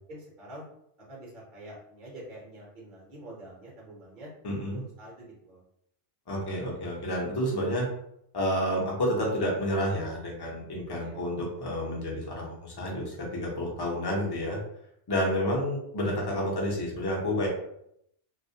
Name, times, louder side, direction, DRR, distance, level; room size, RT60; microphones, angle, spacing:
voice 1, 0.1-0.6 1.1-4.3 4.7-5.6 11.0-11.2, right 1 dB, 50° right, -4 dB, 0.8 m, -46 dB
voice 2, 4.4-4.8 6.3-7.9 8.3-14.6 15.1-17.5, equal, 30° left, -3 dB, 0.5 m, -30 dB
2.3 x 2.1 x 2.6 m, 0.75 s
omnidirectional pair, 1.2 m